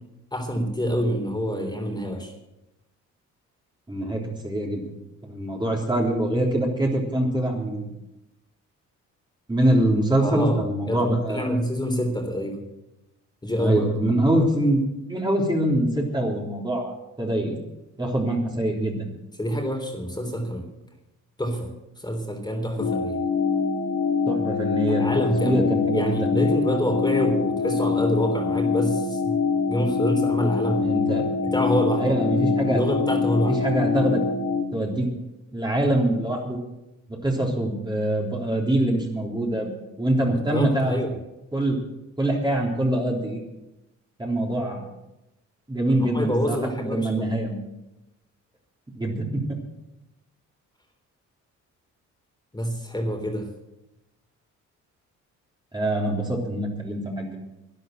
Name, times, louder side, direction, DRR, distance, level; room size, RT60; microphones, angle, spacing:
voice 1, 0.3-2.3 10.2-10.6 10.9-12.6 13.4-13.9 19.4-20.7 21.4-21.7 22.0-23.2 24.9-25.6 25.9-29.4 29.7-30.9 31.4-32.1 32.7-33.6 40.3-41.1 45.9-47.3 52.5-53.5, equal, 15° left, 3 dB, 3.4 m, -26 dB
voice 2, 3.9-4.9 5.2-8.0 9.5-11.5 13.6-14.8 15.1-17.6 18.0-19.1 24.3-25.1 25.4-26.3 30.8-31.3 32.0-32.8 33.5-34.2 34.7-35.1 35.5-36.6 37.1-41.0 41.5-41.8 42.2-43.4 44.2-44.9 45.7-47.6 48.9-49.6 55.7-57.4, right 1 dB, 15° right, -1 dB, 3.3 m, -24 dB
sound 1, 22.8-34.6, left 5 dB, 60° left, 2.5 m, -24 dB
12.0 x 10.5 x 7.7 m, 0.94 s
cardioid pair, 90°, 30 cm